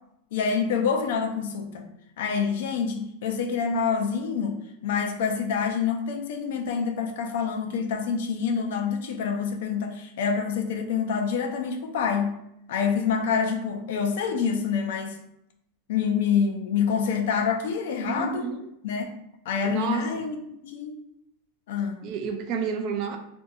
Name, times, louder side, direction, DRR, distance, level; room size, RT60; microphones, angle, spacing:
voice 1, 0.3-1.9 2.2-4.6 4.8-12.4 12.7-15.2 15.9-18.5 18.8-19.1 19.5-20.4 20.6-21.0 21.7-22.0, left 6 dB, 75° left, 4 dB, 0.4 m, -27 dB
voice 2, 18.0-18.6 19.6-20.1 22.0-23.2, right 5 dB, 40° right, 4 dB, 0.3 m, -30 dB
2.6 x 2.6 x 2.3 m, 0.79 s
supercardioid pair, 155°, 0 cm